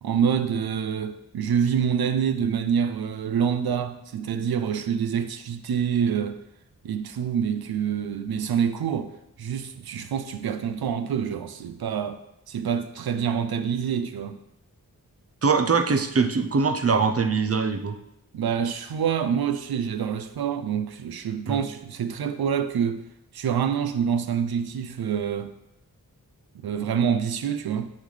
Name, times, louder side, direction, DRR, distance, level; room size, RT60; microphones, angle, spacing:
voice 1, 0.0-6.4 6.8-9.1 9.4-12.2 12.5-14.4 18.3-23.0 23.3-25.5 26.6-27.9, right 7 dB, 85° right, 0.5 m, -26 dB
voice 2, 15.4-18.0 21.5-21.6, right 5 dB, 40° right, 0.6 m, -22 dB
8.7 x 3.9 x 3.2 m
cardioid pair, 55°, 36 cm